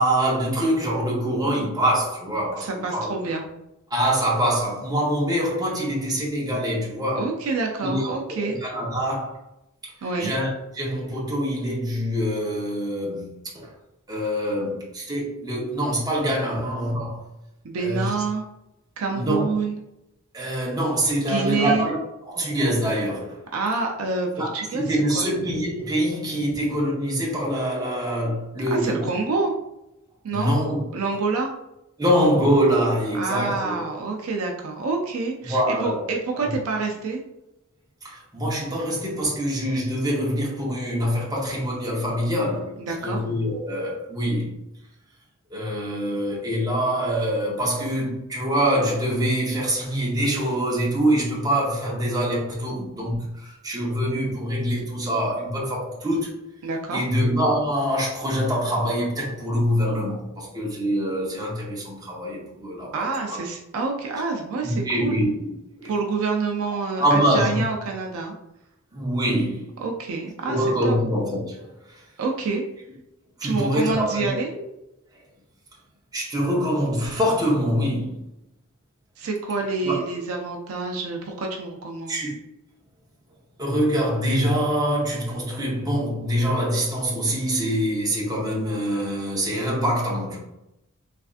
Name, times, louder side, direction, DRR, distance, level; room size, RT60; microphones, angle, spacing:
voice 1, 0.0-3.1 3.9-7.3 7.8-9.4 10.2-10.5 10.7-13.7 14.1-17.2 17.8-18.1 19.1-19.5 20.3-22.0 22.2-23.4 24.3-29.1 30.3-30.8 32.0-33.8 35.4-36.0 36.3-36.5 38.0-44.6 45.5-56.4 56.9-63.4 64.6-65.5 65.8-65.9 67.0-67.6 68.9-69.7 70.4-72.0 73.4-74.3 76.1-78.2 79.8-79.9 82.1-82.3 83.6-90.4, equal, 20° right, 0.9 m, -24 dB
voice 2, 2.6-3.4 7.2-8.6 10.0-10.3 17.6-18.5 19.0-19.8 21.2-21.9 23.5-24.9 25.1-25.3 28.7-29.5 30.2-30.5 30.9-31.5 33.1-37.2 42.9-43.2 56.6-57.0 62.9-65.2 65.9-68.3 69.8-71.0 72.2-72.6 73.4-74.5 79.2-82.2, right 4 dB, 85° right, 0.5 m, -27 dB
3.3 x 2.5 x 2.4 m
head